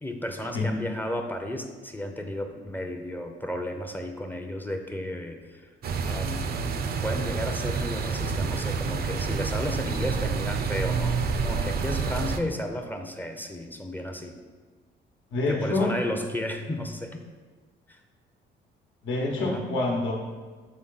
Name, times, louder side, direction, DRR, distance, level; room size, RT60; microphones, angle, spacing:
voice 1, 0.0-5.7 6.0-6.6 7.0-14.4 15.5-17.2 17.9-18.0 19.4-19.6, left 1 dB, 10° left, 4 dB, 0.5 m, -33 dB
sound 1, 5.8-12.4, right 5 dB, 50° right, 0.5 m, -28 dB
voice 2, 15.3-15.9 19.0-20.1, left 2 dB, 75° left, -1 dB, 1.0 m, -26 dB
7.4 x 3.7 x 3.9 m, 1.4 s
cardioid pair, 90°, 20 cm